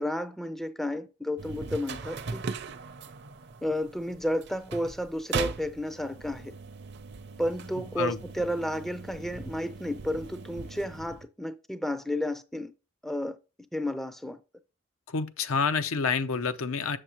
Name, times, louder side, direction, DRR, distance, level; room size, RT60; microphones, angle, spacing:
voice 1, 0.0-2.4 3.6-6.5 7.4-12.7 13.0-13.4 13.7-14.4, left 1 dB, ahead, 0.4 m, -32 dB
sound 1, 1.4-11.3, right 4 dB, 55° right, 0.6 m, -39 dB
voice 2, 15.1-17.0, left 5 dB, 85° left, 0.7 m, -28 dB
7.1 x 6.5 x 3.0 m
head